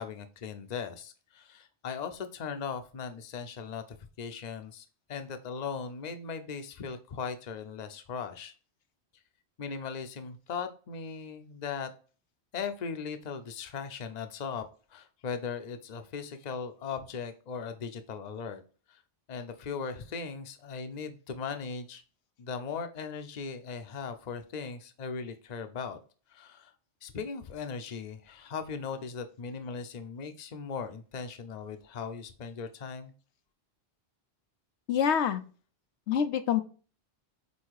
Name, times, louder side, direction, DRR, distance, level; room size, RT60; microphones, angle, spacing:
voice 1, 0.0-8.5 9.6-11.9 12.5-14.6 14.9-18.6 18.9-19.0 19.3-22.0 22.4-26.0 26.3-26.7 27.0-33.1, left 5 dB, 45° left, 8 dB, 0.8 m, -38 dB
voice 2, 34.9-35.4 36.1-36.6, left 8 dB, 85° left, 9 dB, 1.0 m, -26 dB
8.2 x 2.8 x 4.7 m, 0.38 s
omnidirectional pair, 1.1 m